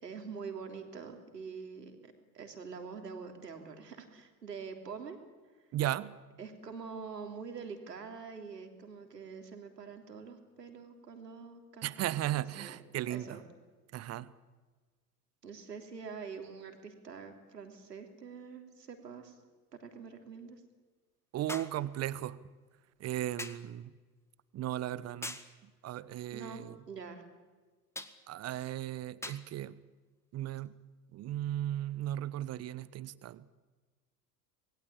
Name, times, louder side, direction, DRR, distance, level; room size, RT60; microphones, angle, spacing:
voice 1, 0.0-2.0 2.3-5.2 6.4-12.8 13.1-13.4 15.4-19.4 19.7-20.6 26.3-27.2, right 5 dB, 80° right, 5 dB, 3.4 m, -45 dB
voice 2, 5.7-6.2 11.8-13.4 13.9-14.3 21.3-22.4 23.0-23.9 24.5-26.8 28.3-29.8 30.3-30.7 31.1-33.5, right 13 dB, 30° right, 19 dB, 1.0 m, -36 dB
sound 1, 17.7-17.8 21.5-21.8 23.4-23.7 25.2-25.6 27.9-28.2 29.2-29.5 30.6-30.7, left 1 dB, 5° left, 1.8 m, -42 dB
26.5 x 21.0 x 8.8 m, 1.4 s
figure-of-eight pair, 75°, 48 cm